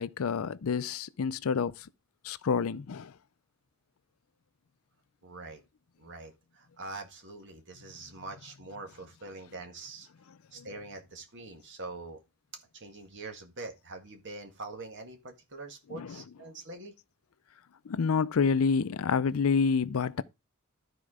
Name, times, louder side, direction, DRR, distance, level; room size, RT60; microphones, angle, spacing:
voice 1, 0.0-1.9 2.2-3.1 10.6-10.7 15.9-16.2 17.8-20.2, left 5 dB, 70° left, 0.5 m, -28 dB
voice 2, 5.2-5.6 6.0-10.1 10.5-12.2 12.7-16.9, right 3 dB, 55° right, 1.8 m, -44 dB
12.0 x 4.5 x 4.9 m
head